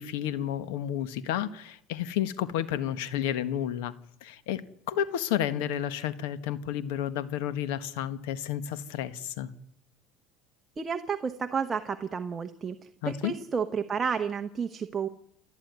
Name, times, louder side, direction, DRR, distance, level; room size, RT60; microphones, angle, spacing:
voice 1, 0.0-3.9 4.2-4.6 4.9-9.5 13.0-13.3, left 10 dB, 85° left, 14 dB, 1.5 m, -31 dB
voice 2, 10.8-15.1, right 6 dB, 20° right, 7 dB, 1.0 m, -31 dB
28.5 x 11.0 x 9.6 m, 0.74 s
cardioid pair, 140°, 0 cm